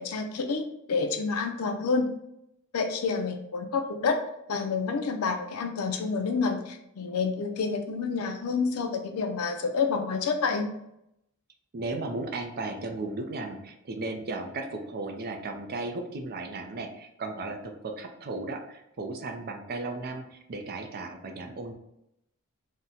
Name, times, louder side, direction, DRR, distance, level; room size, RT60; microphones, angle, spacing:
voice 1, 0.0-2.1 2.7-4.2 4.5-10.6, left 4 dB, 75° left, 5 dB, 0.5 m, -28 dB
voice 2, 11.7-21.7, right 2 dB, 45° right, 5 dB, 0.4 m, -35 dB
2.7 x 2.1 x 3.7 m, 0.80 s
head